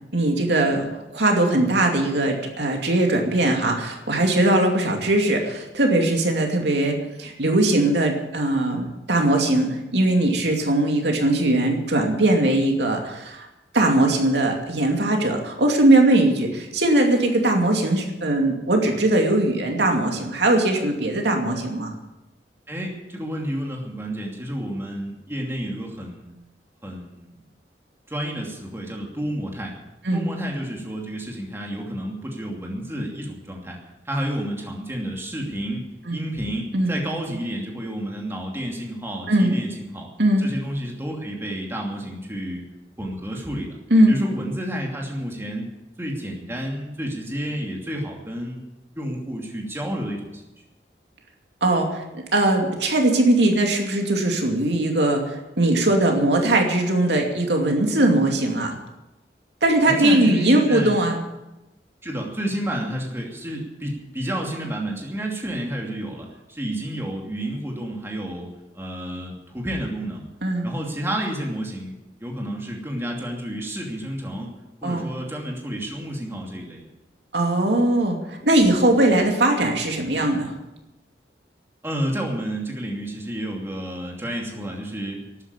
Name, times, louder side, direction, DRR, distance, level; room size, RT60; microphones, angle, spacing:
voice 1, 0.1-13.5 13.7-21.9 30.0-30.2 36.1-36.2 36.7-36.9 39.3-39.6 40.2-40.4 43.9-44.1 51.6-52.0 52.3-58.7 59.6-61.2 70.4-70.7 74.8-75.1 77.3-80.5, right 1 dB, 80° right, 2 dB, 2.5 m, -20 dB
voice 2, 22.7-26.3 26.8-27.3 28.1-29.8 30.1-33.8 34.0-40.1 40.4-42.6 43.0-43.8 44.1-45.7 46.0-48.6 48.9-50.4 59.8-61.0 62.0-70.3 70.6-74.5 74.8-76.8 81.8-85.4, equal, 15° right, -1 dB, 2.7 m, -30 dB
12.5 x 9.6 x 9.7 m, 0.98 s
head